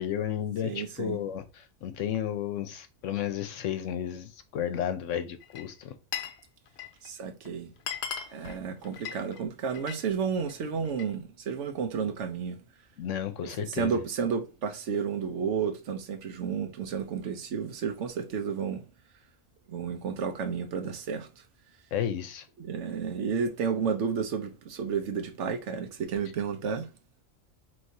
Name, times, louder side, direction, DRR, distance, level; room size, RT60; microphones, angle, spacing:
voice 1, 0.0-5.9 13.0-14.0 21.9-22.4, left 10 dB, 80° left, 1.0 m, -32 dB
voice 2, 0.6-1.2 7.0-7.7 8.3-12.6 13.6-18.8 19.7-21.3 22.6-26.9, right 6 dB, 70° right, 1.0 m, -31 dB
Glass, 5.4-6.4 6.7-7.1 7.4-7.5 7.8-10.0 10.4-11.1, left 8 dB, 65° left, 0.8 m, -38 dB
4.7 x 3.1 x 2.7 m
omnidirectional pair, 1.3 m